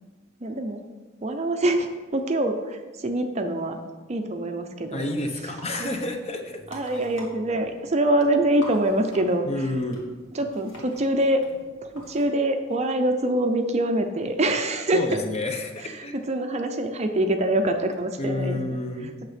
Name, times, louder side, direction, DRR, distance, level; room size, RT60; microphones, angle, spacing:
voice 1, 0.4-0.8 1.2-3.8 4.1-5.1 5.8-6.0 6.7-9.7 10.3-11.4 11.8-15.2 15.8-19.3, right 1 dB, 30° right, 6 dB, 0.6 m, -25 dB
voice 2, 4.9-6.6 9.5-10.0 14.9-16.2 18.2-19.1, left 1 dB, 30° left, 5 dB, 0.9 m, -29 dB
sound 1, 5.1-12.2, equal, 60° left, 2.1 m, -46 dB
8.9 x 6.6 x 5.0 m, 1.3 s
head